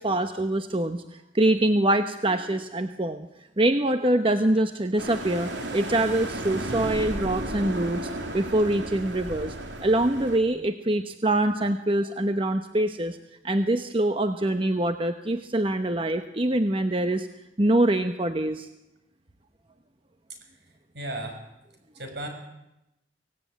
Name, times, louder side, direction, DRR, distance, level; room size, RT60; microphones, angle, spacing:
voice 1, 0.0-3.3 3.6-9.6 9.8-13.2 13.4-17.3 17.6-18.7, right 1 dB, 30° right, 8 dB, 0.9 m, -24 dB
sound 1, 5.0-10.4, right 1 dB, 85° right, 3.2 m, -34 dB
voice 2, 20.9-21.4 21.9-22.3, right 1 dB, 70° right, 4 dB, 6.5 m, -34 dB
25.0 x 17.5 x 9.3 m, 0.92 s
head